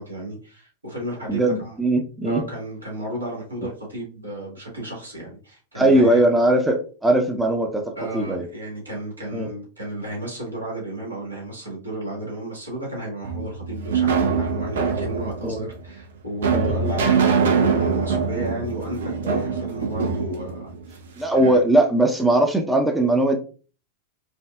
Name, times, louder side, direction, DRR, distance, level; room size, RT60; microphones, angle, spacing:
voice 1, 0.0-1.8 2.2-6.2 7.9-21.0 21.3-21.6, right 1 dB, 80° right, -3 dB, 1.6 m, -33 dB
voice 2, 1.3-2.4 5.8-8.4 9.3-9.5 15.4-15.6 16.5-16.7 19.2-19.4 21.2-23.4, right 1 dB, 5° right, 3 dB, 0.6 m, -20 dB
sound 1, 13.2-21.4, right 5 dB, 60° right, 0.6 m, -23 dB
5.0 x 2.3 x 2.3 m, 0.38 s
figure-of-eight pair, 90°, 0 cm